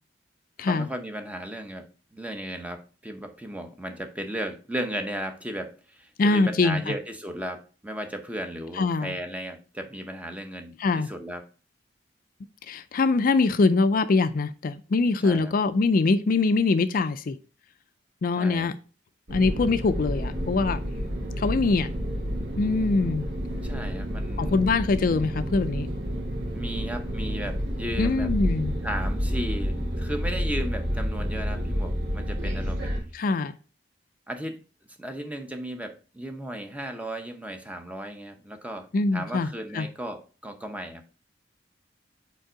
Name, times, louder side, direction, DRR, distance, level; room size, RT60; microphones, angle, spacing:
voice 1, 0.6-11.5 15.2-15.5 18.4-18.7 23.6-24.6 26.5-28.3 28.8-32.9 34.3-34.6 35.0-41.0, right 1 dB, 10° right, 6 dB, 0.8 m, -35 dB
voice 2, 6.2-6.9 8.8-9.1 10.8-11.1 12.7-17.4 18.2-18.8 19.3-20.8 21.4-21.9 22.6-23.3 24.4-25.9 28.0-28.8 33.1-33.6 38.9-39.5 39.7-39.9, left 3 dB, 50° left, 11 dB, 0.4 m, -23 dB
sound 1, 19.3-33.0, equal, 80° right, 3.0 m, -29 dB
5.3 x 4.5 x 5.0 m, 0.37 s
head